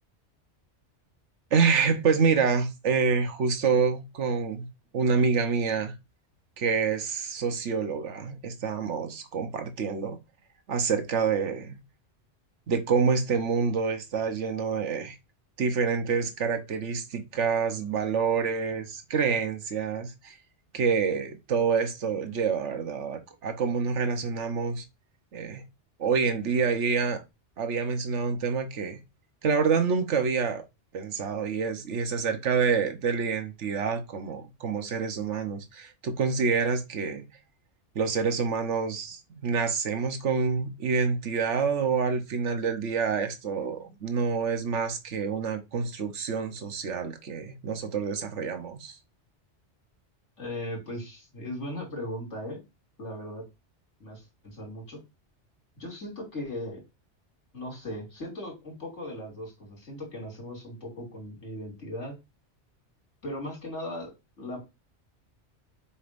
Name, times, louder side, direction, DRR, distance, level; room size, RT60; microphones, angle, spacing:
voice 1, 1.5-4.7 4.9-5.9 6.6-10.2 10.7-11.8 12.7-15.2 15.6-20.4 20.7-24.8 25.3-25.6 26.0-27.2 27.6-29.0 29.4-30.6 30.9-37.2 37.9-49.0, right 5 dB, 80° right, 1.3 m, -27 dB
voice 2, 50.4-52.6 53.0-53.4 54.0-55.0 55.8-56.8 57.5-62.2 63.2-64.6, left 1 dB, 85° left, 3.0 m, -38 dB
7.0 x 5.2 x 2.6 m
omnidirectional pair, 1.2 m